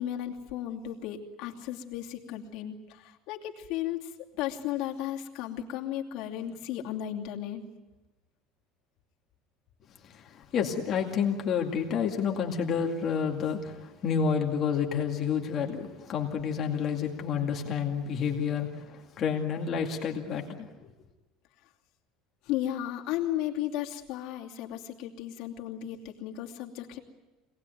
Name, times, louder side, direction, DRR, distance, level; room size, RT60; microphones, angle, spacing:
voice 1, 0.0-4.1 4.4-7.6 22.4-27.0, left 12 dB, 55° left, 1 dB, 2.8 m, -34 dB
voice 2, 10.0-20.7, left 7 dB, 30° left, 1 dB, 2.3 m, -29 dB
26.0 x 19.0 x 9.3 m, 1.1 s
cardioid pair, 175°, 0 cm